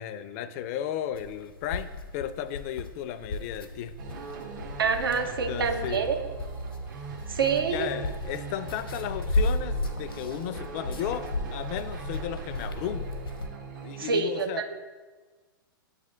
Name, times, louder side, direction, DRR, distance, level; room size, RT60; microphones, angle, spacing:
voice 1, 0.0-3.9 5.2-6.1 7.7-13.1 13.8-14.6, left 10 dB, 40° left, 12 dB, 0.4 m, -34 dB
sound 1, 1.1-13.5, left 2 dB, 85° left, 0.7 m, -35 dB
sound 2, 4.0-14.0, right 5 dB, 60° right, 0.9 m, -40 dB
voice 2, 4.8-6.2 7.3-7.9 14.0-14.7, right 5 dB, 80° right, 6 dB, 0.7 m, -27 dB
8.0 x 3.3 x 3.8 m, 1.3 s
hypercardioid pair, 115°, 12 cm